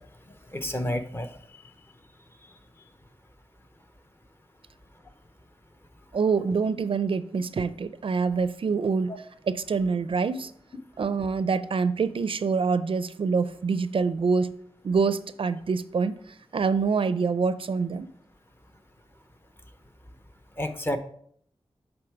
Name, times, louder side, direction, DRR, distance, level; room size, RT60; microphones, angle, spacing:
voice 1, 0.5-1.3 20.6-21.0, left 1 dB, 20° left, 0.7 m, -29 dB
voice 2, 6.1-10.5 11.0-14.5 14.8-16.1 16.5-18.1, right 5 dB, 60° right, 0.4 m, -26 dB
7.8 x 3.6 x 4.7 m
wide cardioid pair, 80°, 10 cm